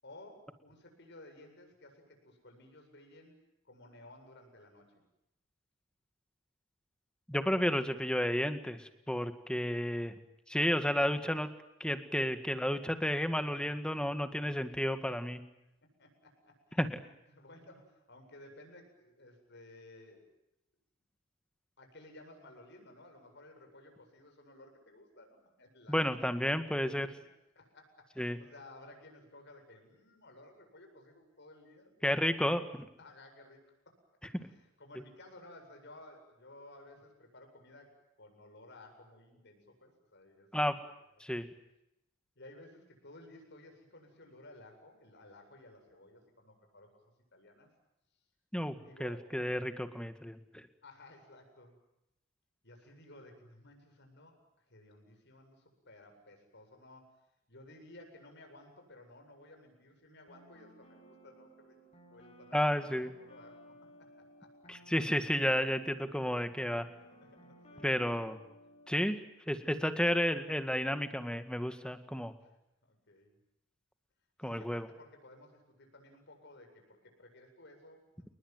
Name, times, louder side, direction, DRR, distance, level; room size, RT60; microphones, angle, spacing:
voice 1, 0.0-3.4 3.6-5.0 9.1-9.2 15.8-16.9 17.3-20.3 21.8-26.0 26.4-27.1 27.5-32.1 33.0-34.0 34.2-40.9 41.1-41.2 42.4-46.9 47.3-47.7 48.7-49.3 50.8-51.8 52.6-54.4 54.7-57.1 57.5-61.8 62.1-62.6 62.9-64.5 64.8-64.9 67.1-67.9 69.6-69.9 72.4-72.6 72.9-73.3 74.4-78.3, left 1 dB, 55° left, 4 dB, 8.0 m, -56 dB
voice 2, 7.3-10.1 10.5-11.5 11.8-15.4 16.8-17.0 25.9-27.1 28.2-28.4 32.0-32.9 40.5-40.8 41.2-41.5 48.5-48.8 49.0-50.6 62.5-63.1 64.7-66.9 67.8-68.4 68.9-69.2 69.5-72.3 74.4-74.9, equal, 5° left, 9 dB, 1.9 m, -32 dB
sound 1, 60.3-69.0, equal, 30° left, 7.6 m, -58 dB
29.5 x 20.5 x 9.3 m, 0.85 s
head